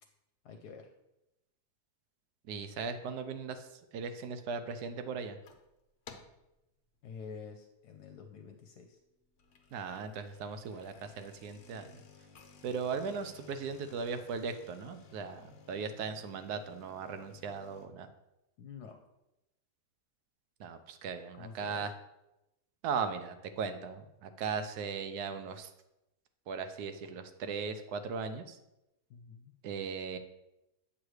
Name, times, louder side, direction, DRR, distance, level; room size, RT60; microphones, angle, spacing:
voice 1, 0.4-0.9 7.0-9.0 18.6-19.0 21.3-21.9 29.1-29.5, left 6 dB, 75° left, 4 dB, 1.2 m, -48 dB
voice 2, 2.5-3.7 3.9-5.4 9.7-11.9 12.6-18.1 20.6-21.9 22.8-25.7 26.5-28.6 29.6-30.2, right 5 dB, 75° right, 9 dB, 1.2 m, -38 dB
sound 1, 5.3-5.7 6.1-6.5 7.0-7.3 7.8-7.9 8.2-8.3 9.2-17.9, left 6 dB, 55° left, 0.9 m, -57 dB
8.3 x 3.2 x 6.3 m, 0.93 s
omnidirectional pair, 1.8 m